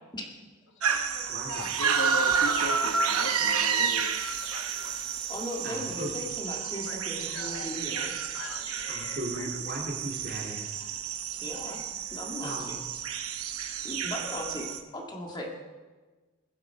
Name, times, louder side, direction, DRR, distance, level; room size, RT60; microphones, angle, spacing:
voice 1, 0.7-4.9 6.8-7.0 7.3-7.7 8.3-9.6 11.9-12.0, left 2 dB, 60° left, 4 dB, 1.3 m, -39 dB
sound 1, 0.8-14.8, right 6 dB, 85° right, 1.0 m, -30 dB
voice 2, 1.3-1.7 5.6-6.1 8.9-10.7 12.4-12.7 13.7-13.8, right 1 dB, 45° right, -1 dB, 2.7 m, -37 dB
sound 2, 1.5-6.5 7.1-7.3, equal, 5° left, 1.1 m, -48 dB
voice 3, 5.3-8.1 11.4-11.8 12.1-12.5 13.8-14.7 14.9-15.5, left 1 dB, 20° left, -1 dB, 1.9 m, -37 dB
21.5 x 7.6 x 4.8 m, 1.3 s
head